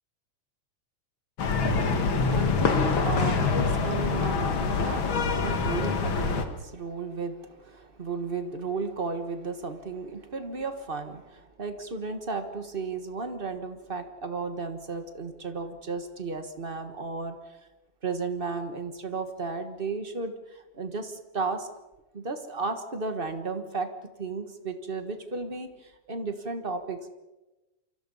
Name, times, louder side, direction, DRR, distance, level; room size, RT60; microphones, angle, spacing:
sound 1, 1.4-6.4, left 4 dB, 45° left, 2.3 m, -25 dB
voice 1, 1.5-17.5 18.0-21.7 22.1-23.9 24.2-27.1, right 4 dB, 35° right, 7 dB, 0.8 m, -34 dB
28.5 x 25.0 x 5.6 m, 1.1 s
omnidirectional pair, 3.4 m